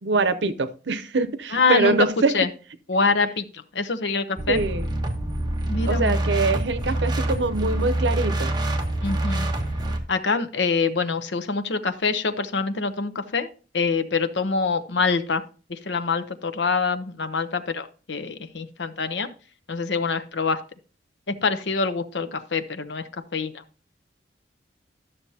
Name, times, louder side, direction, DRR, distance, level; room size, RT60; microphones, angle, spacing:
voice 1, 0.0-2.4 4.5-4.8 5.9-8.5, right 3 dB, 85° right, 0.8 m, -24 dB
voice 2, 1.5-2.0 2.3-2.5 2.9-3.4 3.7-4.6 5.7-6.2 9.0-9.5 10.1-15.4 15.7-19.3 19.7-20.6 21.3-23.0 23.3-23.6, left 4 dB, 80° left, 0.8 m, -25 dB
sound 1, 4.4-10.0, right 1 dB, 25° right, 1.2 m, -26 dB
12.0 x 6.9 x 2.8 m
head